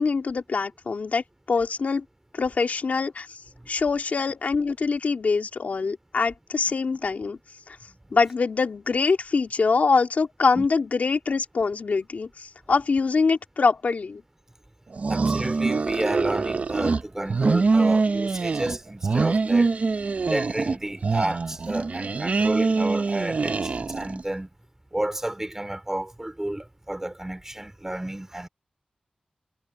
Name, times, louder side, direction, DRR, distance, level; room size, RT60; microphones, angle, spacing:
voice 1, 0.0-2.0 2.3-3.4 3.7-7.4 7.7-7.8 8.1-14.2, left 4 dB, 85° left, 2.6 m, -24 dB
sound 1, 14.9-17.0 17.3-18.8 19.0-20.8 21.0-24.2, right 4 dB, 65° right, 0.6 m, -24 dB
voice 2, 15.1-19.8 20.3-24.5 24.9-28.5, right 1 dB, 15° right, 2.6 m, -31 dB
wide cardioid pair, 80°, 3 cm